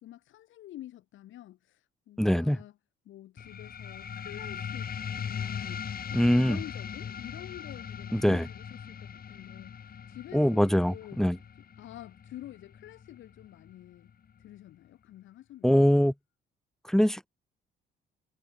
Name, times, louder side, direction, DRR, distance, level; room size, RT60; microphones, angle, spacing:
voice 1, 0.0-2.7 3.1-4.9 5.2-11.2 11.8-14.1 14.4-15.9, left 13 dB, 80° left, 2.0 m, -48 dB
voice 2, 2.2-2.6 6.1-6.6 8.1-8.5 10.3-11.4 15.6-16.1 16.8-17.2, equal, ahead, 0.5 m, -23 dB
sound 1, 3.4-14.4, left 7 dB, 50° left, 2.1 m, -40 dB
cardioid pair, 90°, 20 cm